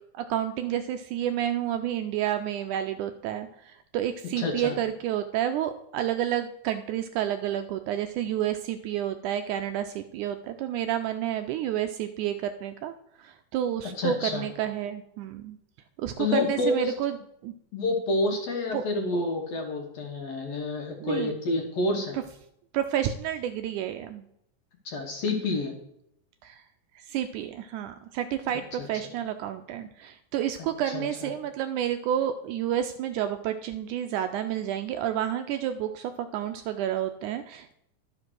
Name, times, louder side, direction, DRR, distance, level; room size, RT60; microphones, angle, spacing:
voice 1, 0.1-15.6 16.0-17.2 17.4-17.5 18.7-18.9 21.0-21.3 22.7-24.2 26.4-26.6 27.0-37.7, right 11 dB, 80° right, 8 dB, 1.8 m, -30 dB
voice 2, 4.4-4.8 13.9-14.5 16.2-16.9 17.7-22.2 24.9-25.7 28.8-28.9 30.9-31.3, left 2 dB, 60° left, 2 dB, 1.9 m, -28 dB
11.5 x 5.1 x 6.1 m, 0.77 s
omnidirectional pair, 3.9 m